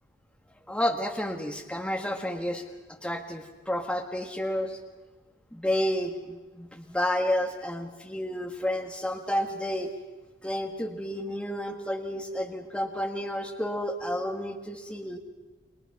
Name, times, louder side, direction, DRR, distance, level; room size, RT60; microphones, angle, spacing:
voice 1, 0.7-2.6 3.0-4.8 5.5-9.9 10.4-15.2, left 1 dB, 5° left, 3 dB, 1.6 m, -30 dB
30.0 x 22.5 x 5.9 m, 1.2 s
head